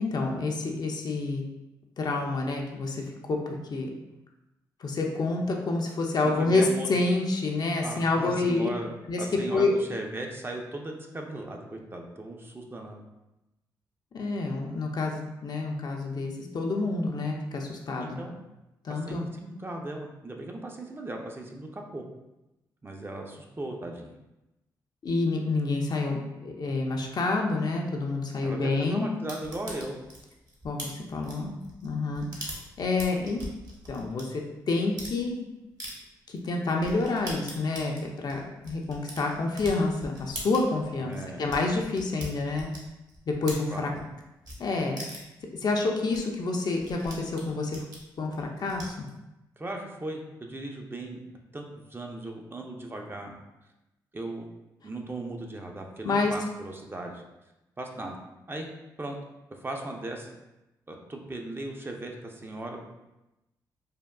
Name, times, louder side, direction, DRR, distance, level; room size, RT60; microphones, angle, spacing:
voice 1, 0.0-1.4 2.0-3.9 4.8-8.7 9.1-9.2 9.5-9.8 14.1-18.2 18.8-19.2 25.0-29.1 30.6-31.5 31.8-33.4 33.9-35.5 36.3-42.7 43.3-43.9 44.6-45.0 45.6-47.8 48.2-49.1 56.0-56.3, left 3 dB, 50° left, 1 dB, 0.5 m, -28 dB
voice 2, 6.2-6.9 7.8-13.0 18.0-18.3 18.9-22.0 22.8-24.1 28.4-30.0 41.0-41.5 43.7-44.1 49.6-51.2 51.5-53.4 54.1-54.5 54.8-57.2 57.8-58.2 58.5-58.7 59.0-59.2 59.5-60.3 60.9-62.9, right 2 dB, 25° right, 2 dB, 0.5 m, -37 dB
sound 1, 29.3-34.2 34.7-35.2 35.8-35.9 36.4-36.5 36.8-44.1 44.4-44.6 45.0-45.4 45.8-45.9 46.1-46.2 46.4-49.1, right 1 dB, 45° right, 1.0 m, -42 dB
3.4 x 2.3 x 2.2 m, 0.97 s
supercardioid pair, 45°, 9 cm